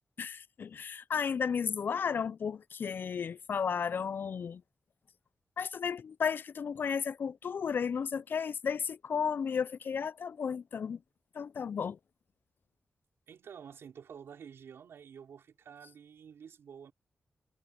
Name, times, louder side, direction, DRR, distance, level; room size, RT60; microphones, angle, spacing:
voice 1, 0.2-4.6 5.6-11.0 11.3-12.0, left 6 dB, 55° left, 0.3 m, -33 dB
voice 2, 13.3-16.9, right 7 dB, 90° right, 4.8 m, -50 dB
wide cardioid pair, 115°, 4 cm